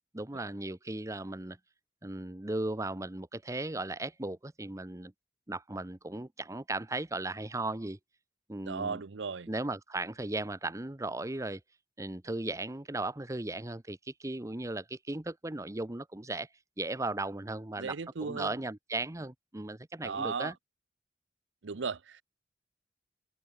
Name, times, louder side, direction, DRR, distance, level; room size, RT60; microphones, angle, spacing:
voice 1, 0.1-1.6 2.0-5.1 5.5-8.0 8.5-9.0 9.5-11.6 12.0-16.5 16.8-20.5, right 2 dB, 15° right, 0.8 m, -36 dB
voice 2, 8.7-9.5 17.8-18.5 20.0-20.5 21.6-22.2, right 5 dB, 90° right, 0.7 m, -36 dB
open air
head